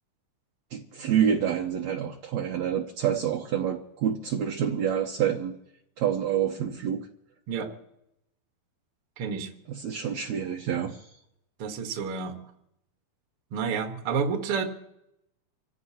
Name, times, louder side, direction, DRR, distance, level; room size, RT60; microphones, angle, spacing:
voice 1, 0.7-5.5 6.0-7.1 9.7-11.1, right 8 dB, 65° right, 2 dB, 2.0 m, -27 dB
voice 2, 9.2-9.5 11.6-12.4 13.5-14.6, right 6 dB, 50° right, 4 dB, 1.9 m, -29 dB
27.5 x 16.0 x 2.9 m, 0.80 s
omnidirectional pair, 4.0 m